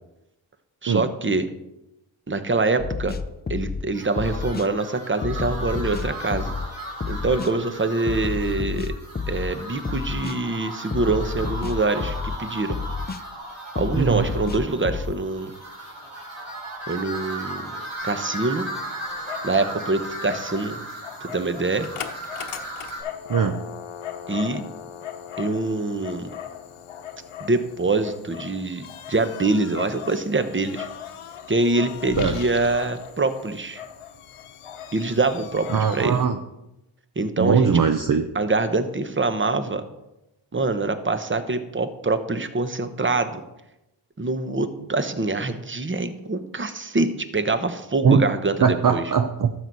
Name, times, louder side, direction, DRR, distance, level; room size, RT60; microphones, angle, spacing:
voice 1, 0.8-1.5 2.3-3.2 3.5-6.5 7.1-8.9 9.3-12.8 13.8-15.5 16.9-17.7 18.0-18.7 19.4-20.8 21.2-21.9 24.3-24.6 25.4-26.3 27.4-30.9 31.5-33.8 34.9-36.2 37.2-37.8 38.3-39.8 40.5-43.4 44.2-48.6 48.9-49.0, right 3 dB, 25° right, 10 dB, 1.1 m, -25 dB
sound 1, 2.8-3.8 4.2-4.7 5.2-6.7 7.0-7.5 8.1-9.5 9.9-10.4 10.9-12.4 12.7-13.2 13.8-15.1, left 5 dB, 20° left, 0.5 m, -29 dB
sound 2, 3.9-23.0, right 1 dB, 70° right, 4.4 m, -36 dB
Dog, 18.5-36.3, left 8 dB, 80° left, 1.1 m, -38 dB
voice 2, 23.3-23.6 32.2-32.4 35.7-36.4 37.4-38.2 48.0-48.2 48.6-49.5, right 6 dB, 40° right, 6 dB, 0.7 m, -20 dB
12.5 x 7.9 x 4.1 m, 0.91 s
cardioid pair, 70°, 50 cm